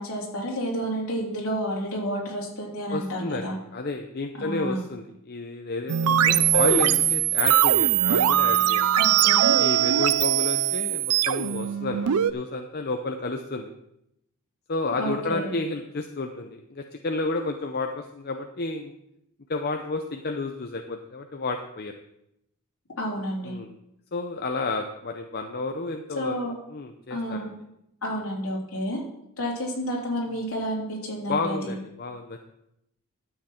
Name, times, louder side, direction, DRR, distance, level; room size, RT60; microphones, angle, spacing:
voice 1, 0.0-3.5 4.3-4.8 9.0-9.6 14.9-15.6 23.0-23.6 26.2-26.5 27.1-27.5 28.0-29.0 29.4-31.8, equal, 70° left, -3 dB, 3.6 m, -30 dB
voice 2, 2.9-8.8 9.6-13.7 14.7-18.9 19.5-21.9 23.4-23.7 24.1-26.4 26.7-27.4 31.3-32.4, left 3 dB, 45° left, 4 dB, 0.7 m, -31 dB
sound 1, 5.9-12.3, right 11 dB, 85° right, 0.5 m, -21 dB
12.5 x 7.6 x 4.4 m, 0.81 s
head